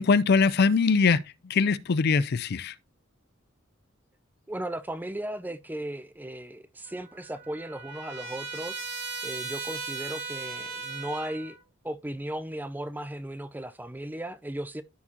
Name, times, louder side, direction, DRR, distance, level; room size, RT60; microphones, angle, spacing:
voice 1, 0.0-2.8, left 4 dB, 50° left, 0.4 m, -22 dB
voice 2, 4.5-8.8 9.2-11.6 11.8-14.8, right 1 dB, 10° right, 0.5 m, -36 dB
Trumpet, 6.9-11.6, right 4 dB, 55° right, 2.7 m, -37 dB
14.0 x 4.7 x 2.8 m
head